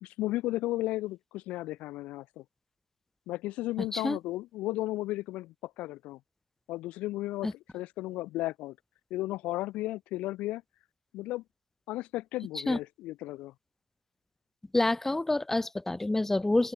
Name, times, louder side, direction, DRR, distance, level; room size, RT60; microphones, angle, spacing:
voice 1, 0.0-2.4 3.3-6.2 6.7-8.7 9.1-10.6 11.1-11.4 11.9-13.5, left 17 dB, 70° left, 1.6 m, -34 dB
voice 2, 14.7-16.7, left 2 dB, 15° left, 0.9 m, -27 dB
open air
hypercardioid pair, 50°, 2 cm